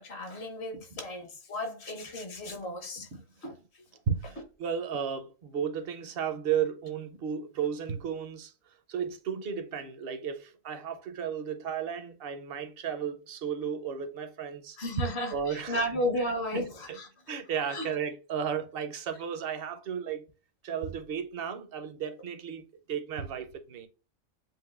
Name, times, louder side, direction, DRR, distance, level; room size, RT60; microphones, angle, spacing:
voice 1, 0.0-3.1 3.4-3.6 14.8-17.1 17.7-17.9, left 1 dB, 55° left, 1.3 m, -34 dB
voice 2, 4.1-8.5 8.9-14.8 15.3-15.8 16.5-17.0 17.3-20.3 20.6-23.9, right 7 dB, 55° right, 0.8 m, -34 dB
7.7 x 2.6 x 2.4 m
omnidirectional pair, 1.4 m